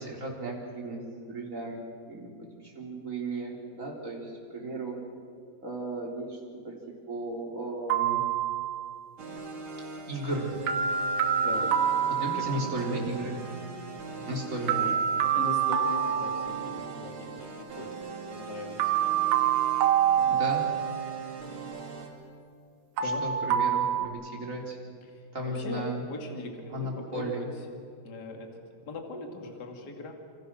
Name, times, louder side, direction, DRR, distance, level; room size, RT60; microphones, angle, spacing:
voice 1, 0.0-1.8 2.1-2.3 2.6-4.9 5.6-6.4 6.6-6.7 7.1-8.2 10.1-10.5 12.1-13.4 14.3-14.9 20.3-20.6 23.0-24.8 25.3-26.0 26.7-27.5, right 2 dB, 20° right, -1 dB, 4.0 m, -35 dB
sound 1, 7.9-9.0 10.7-13.0 14.7-17.0 18.8-21.1 23.0-24.1, right 9 dB, 70° right, 3.0 m, -26 dB
sound 2, 9.2-22.1, right 4 dB, 35° right, 3.1 m, -41 dB
voice 2, 11.4-11.8 12.4-13.0 14.7-15.0 15.3-18.9 23.0-23.2 25.1-27.5 28.0-28.5 28.9-30.1, left 3 dB, 30° left, 3 dB, 2.5 m, -40 dB
28.0 x 26.5 x 6.4 m, 2.3 s
omnidirectional pair, 4.7 m